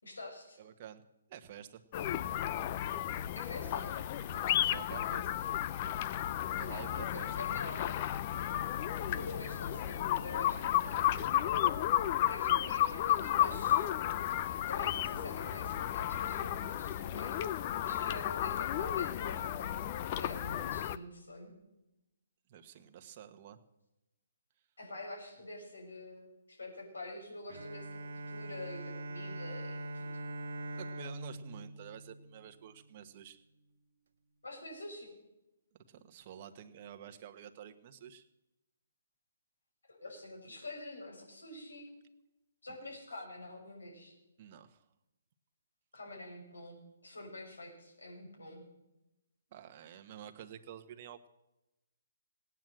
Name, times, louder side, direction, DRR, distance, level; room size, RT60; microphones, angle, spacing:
voice 1, 0.0-0.6 3.4-3.9 6.7-8.0 9.1-11.1 12.1-13.9 14.7-19.9 20.2-21.5 24.8-28.0 28.3-30.1 34.4-35.1 40.0-41.9 42.6-44.1 45.9-48.6, left 2 dB, 90° left, 0 dB, 6.0 m, -46 dB
voice 2, 0.6-1.0 1.3-1.8 3.8-3.9 4.2-5.3 6.1-6.3 6.6-7.3 9.1-9.3 17.9-18.3 22.5-23.6 30.6-33.4 35.9-38.3 44.4-44.8 49.5-51.3, right 9 dB, 40° right, 7 dB, 1.3 m, -50 dB
sound 1, 1.9-21.0, left 12 dB, 35° left, 0.6 m, -33 dB
Bowed string instrument, 27.5-33.0, right 1 dB, 65° right, 1.0 m, -43 dB
17.5 x 9.3 x 7.7 m, 0.95 s
hypercardioid pair, 145°, 0 cm